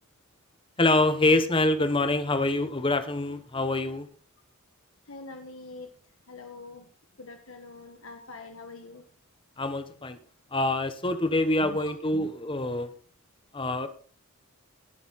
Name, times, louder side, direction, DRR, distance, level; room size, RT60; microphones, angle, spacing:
voice 1, 0.8-4.1 9.6-10.2 10.5-12.9 13.5-13.9, left 2 dB, 25° left, 10 dB, 1.0 m, -25 dB
voice 2, 5.1-5.9 6.3-6.9 7.2-9.0 11.6-12.3, left 3 dB, 65° left, 5 dB, 1.5 m, -44 dB
18.5 x 7.2 x 4.0 m, 0.41 s
head